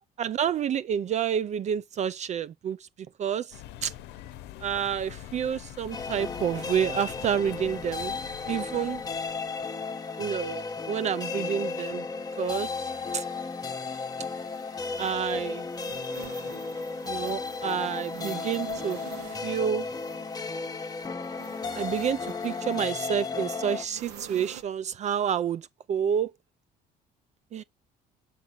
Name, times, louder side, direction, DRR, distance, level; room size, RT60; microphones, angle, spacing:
voice 1, 0.2-2.9 3.2-3.9 4.6-8.1 8.5-9.0 10.2-12.1 12.4-13.2 15.0-15.7 17.0-19.9 21.7-26.3 27.5-27.6, right 8 dB, 45° right, 0.4 m, -29 dB
sound 1, 3.5-9.6, left 13 dB, 85° left, 0.7 m, -45 dB
sound 2, 5.9-23.8, left 4 dB, 20° left, 1.0 m, -34 dB
sound 3, 14.5-24.6, right 10 dB, 90° right, 1.3 m, -48 dB
7.3 x 4.2 x 3.8 m
cardioid pair, 110°, 17 cm